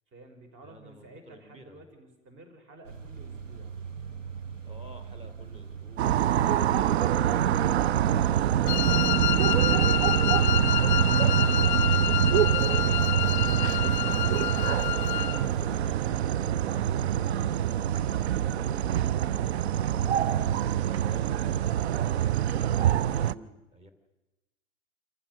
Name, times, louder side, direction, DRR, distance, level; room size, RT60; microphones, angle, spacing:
voice 1, 0.1-3.8, right 2 dB, 30° right, 6 dB, 4.8 m, -53 dB
voice 2, 0.6-1.8 4.6-9.2 14.9-17.7 20.5-23.9, equal, 15° right, 9 dB, 2.7 m, -52 dB
sound 1, 2.8-15.8, right 6 dB, 80° right, 1.5 m, -41 dB
sound 2, 6.0-23.3, right 10 dB, 60° right, 0.6 m, -25 dB
Wind instrument woodwind instrument, 8.7-15.4, left 11 dB, 35° left, 0.8 m, -28 dB
27.5 x 15.0 x 6.5 m, 1.1 s
figure-of-eight pair, 95°, 37 cm